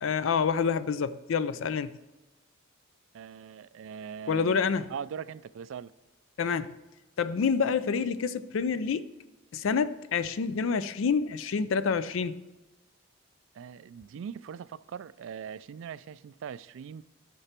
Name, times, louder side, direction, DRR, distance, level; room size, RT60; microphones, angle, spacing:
voice 1, 0.0-1.9 4.3-4.9 6.4-6.7 7.2-9.1 9.5-12.4, left 5 dB, 70° left, 0.4 m, -28 dB
voice 2, 3.1-4.6 4.9-5.9 13.5-17.0, right 7 dB, 65° right, 0.3 m, -41 dB
9.9 x 6.0 x 4.4 m
head